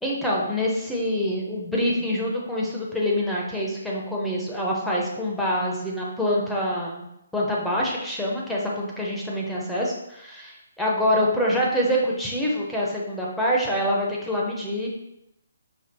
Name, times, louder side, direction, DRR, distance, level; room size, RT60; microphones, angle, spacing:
voice 1, 0.0-7.1 7.3-14.9, equal, 5° left, -5 dB, 0.6 m, -25 dB
5.1 x 2.4 x 4.1 m, 0.83 s
hypercardioid pair, 165°, 0 cm